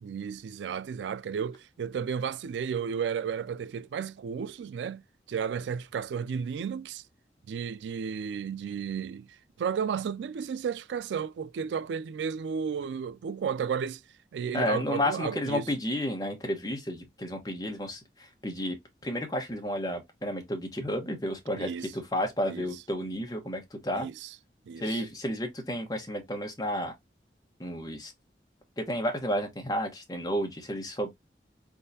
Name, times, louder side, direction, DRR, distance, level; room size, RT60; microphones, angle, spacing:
voice 1, 0.0-5.0 5.3-7.0 7.5-14.0 14.3-15.7 21.6-21.9 22.5-22.7 23.9-24.3 24.7-25.0, right 7 dB, 85° right, 0.3 m, -33 dB
voice 2, 14.5-18.0 18.4-18.8 19.0-24.1 24.8-26.9 27.6-28.1 28.8-31.1, equal, 20° left, 1.1 m, -31 dB
4.0 x 3.7 x 2.7 m
head